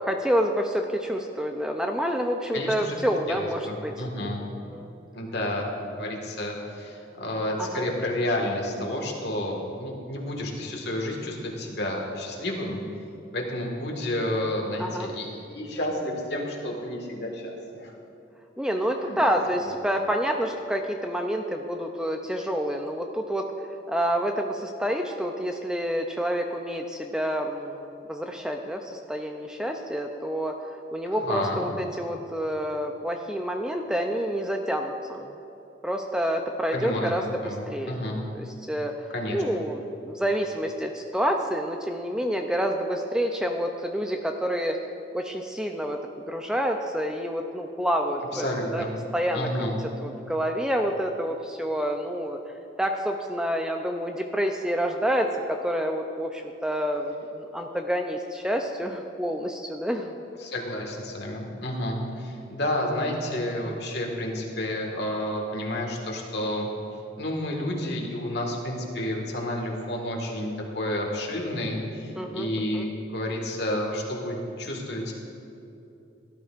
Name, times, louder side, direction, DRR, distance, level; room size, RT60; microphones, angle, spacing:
voice 1, 0.0-4.9 7.6-7.8 14.8-15.1 18.6-23.5 23.9-30.6 30.9-35.3 35.8-37.2 37.7-38.9 39.3-44.8 45.1-46.0 46.3-48.4 48.7-48.8 49.1-49.7 50.0-52.4 52.8-60.1 63.6-63.7 72.2-72.9, equal, 5° right, 3 dB, 0.4 m, -28 dB
voice 2, 2.5-3.0 3.3-4.4 5.1-12.8 13.3-17.9 18.9-19.2 19.6-19.8 31.1-31.6 36.7-38.2 39.1-39.4 48.3-48.9 49.3-49.8 60.4-66.7 67.2-75.1, left 1 dB, 60° left, 0 dB, 1.7 m, -30 dB
17.0 x 12.0 x 2.5 m, 2.8 s
head